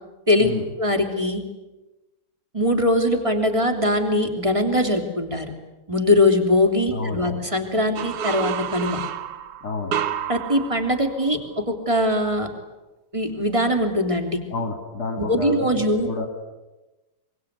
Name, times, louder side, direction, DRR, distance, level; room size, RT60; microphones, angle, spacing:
voice 1, 0.8-1.4 2.5-5.5 5.9-9.0 10.3-12.5 13.1-14.4 15.3-16.1, left 1 dB, 10° right, 5 dB, 2.5 m, -21 dB
voice 2, 6.9-7.4 9.6-9.9 14.5-15.7 16.0-16.3, left 3 dB, 30° left, 4 dB, 2.8 m, -29 dB
sound 1, 8.0-11.6, right 9 dB, 70° right, 1.3 m, -30 dB
24.5 x 24.0 x 9.5 m, 1.1 s
omnidirectional pair, 4.1 m